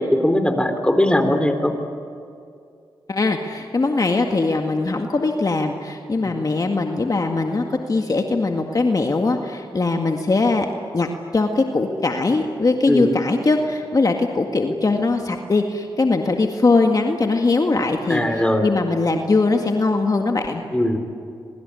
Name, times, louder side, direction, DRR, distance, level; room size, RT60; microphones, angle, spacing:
voice 1, 0.1-1.7 6.2-6.3 12.9-13.1 18.1-18.7 20.7-21.0, left 1 dB, 10° left, 7 dB, 3.7 m, -19 dB
voice 2, 3.1-10.7 10.9-11.1 11.3-20.6, left 3 dB, 40° left, 3 dB, 2.0 m, -21 dB
26.0 x 23.0 x 9.9 m, 2.4 s
cardioid pair, 50°, 9 cm